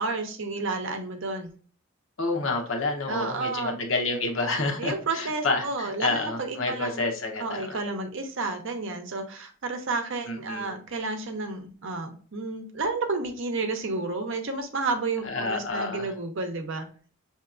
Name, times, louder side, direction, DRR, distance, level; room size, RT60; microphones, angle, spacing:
voice 1, 0.0-1.5 3.1-3.8 4.8-7.0 7.4-16.9, right 3 dB, 60° right, 5 dB, 0.7 m, -31 dB
voice 2, 2.2-7.8 10.3-10.8 15.2-16.1, left 3 dB, 60° left, 2 dB, 0.9 m, -29 dB
5.6 x 2.8 x 2.5 m, 0.43 s
head